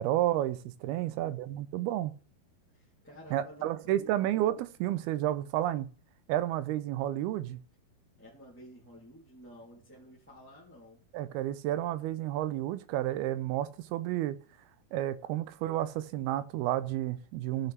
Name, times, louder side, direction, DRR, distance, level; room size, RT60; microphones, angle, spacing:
voice 1, 0.0-2.1 3.3-5.9 6.3-7.6 11.1-14.4 14.9-17.7, right 13 dB, 90° right, 2.6 m, -31 dB
voice 2, 0.9-1.4 2.7-4.0 8.2-11.0, equal, 5° left, 2.2 m, -52 dB
15.5 x 6.7 x 3.4 m
omnidirectional pair, 4.4 m